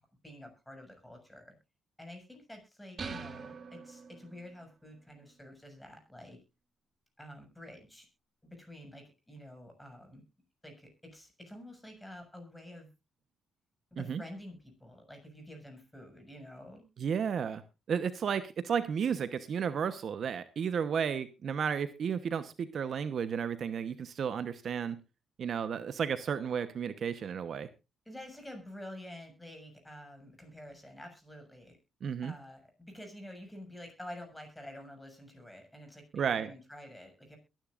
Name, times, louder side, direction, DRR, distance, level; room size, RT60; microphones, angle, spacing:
voice 1, 0.2-1.5 2.0-6.4 7.2-8.1 8.4-10.2 10.6-12.9 13.9-16.8 28.0-31.8 32.2-37.4, left 1 dB, 10° left, 5 dB, 6.7 m, -49 dB
sound 1, 3.0-4.6, right 5 dB, 40° right, 1.9 m, -43 dB
voice 2, 17.0-17.6 17.9-25.0 25.4-27.7 32.0-32.3 36.1-36.5, right 7 dB, 55° right, 12 dB, 1.0 m, -33 dB
22.5 x 10.5 x 2.5 m, 0.27 s
cardioid pair, 90°, 0 cm